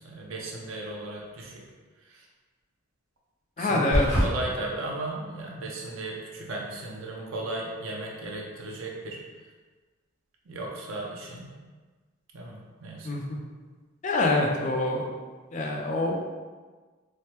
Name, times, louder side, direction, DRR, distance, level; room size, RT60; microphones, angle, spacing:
voice 1, 0.0-1.6 2.1-2.3 3.6-9.2 10.5-11.5 12.3-13.1, right 2 dB, 75° right, -2 dB, 0.6 m, -36 dB
voice 2, 3.6-4.1 13.1-13.4 14.0-15.0 15.5-16.2, left 2 dB, 35° left, 0 dB, 0.4 m, -25 dB
sound 1, 3.9-4.3, equal, 30° right, 1.2 m, -22 dB
3.2 x 2.1 x 2.9 m, 1.4 s
head